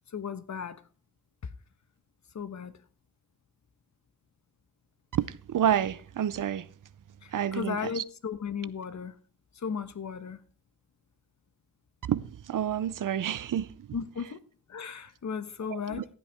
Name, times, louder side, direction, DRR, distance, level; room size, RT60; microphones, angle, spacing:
voice 1, 0.1-0.8 1.4-1.5 2.3-2.7 7.2-9.1 9.5-10.4 13.9-14.4 14.7-16.1, left 6 dB, 55° left, 1.1 m, -35 dB
voice 2, 5.1-6.7 7.3-8.0 12.1-13.9 15.7-16.0, right 10 dB, 65° right, 0.6 m, -29 dB
15.0 x 8.7 x 3.5 m
cardioid pair, 65°, 34 cm